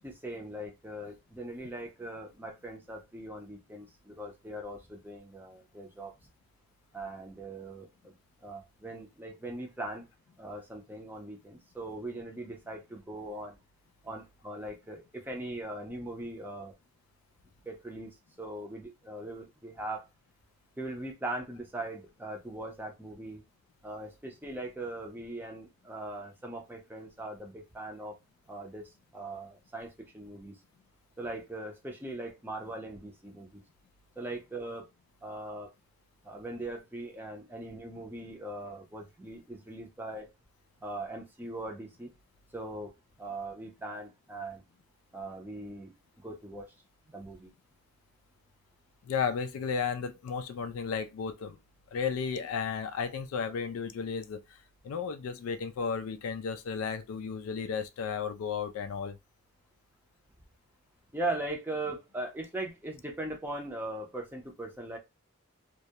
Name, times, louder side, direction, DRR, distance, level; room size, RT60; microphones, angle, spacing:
voice 1, 0.0-6.1 6.9-8.1 8.4-10.0 10.4-13.6 14.0-16.7 17.6-20.1 20.8-23.4 23.8-28.1 28.5-30.6 31.2-33.6 34.2-34.9 35.2-35.7 36.2-40.3 40.8-42.1 42.5-42.9 43.2-44.6 45.1-45.9 46.2-46.7 47.1-47.5 61.1-65.0, right 2 dB, 10° right, 0.5 m, -40 dB
voice 2, 49.0-51.6 51.9-54.6 54.8-59.2, left 6 dB, 75° left, 0.3 m, -34 dB
2.2 x 2.0 x 2.7 m
head